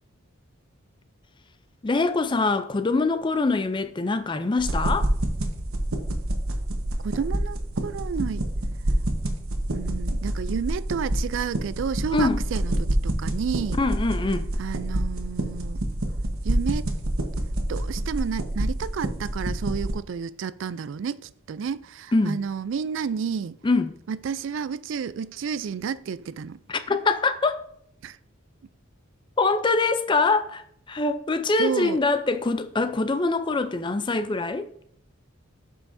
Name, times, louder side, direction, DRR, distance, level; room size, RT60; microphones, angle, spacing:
voice 1, 1.8-5.1 12.1-12.5 13.8-14.5 22.1-22.4 23.6-24.0 26.7-27.7 29.4-30.6 30.9-34.7, left 3 dB, 25° left, 0.4 m, -24 dB
sound 1, 4.6-19.9, right 1 dB, 90° right, 1.1 m, -28 dB
voice 2, 7.0-8.4 9.7-13.8 14.6-15.8 16.4-16.9 17.7-21.2 21.5-23.6 24.1-26.6 28.0-28.1 31.6-32.0, right 6 dB, 65° right, 0.3 m, -31 dB
12.0 x 5.6 x 2.6 m
head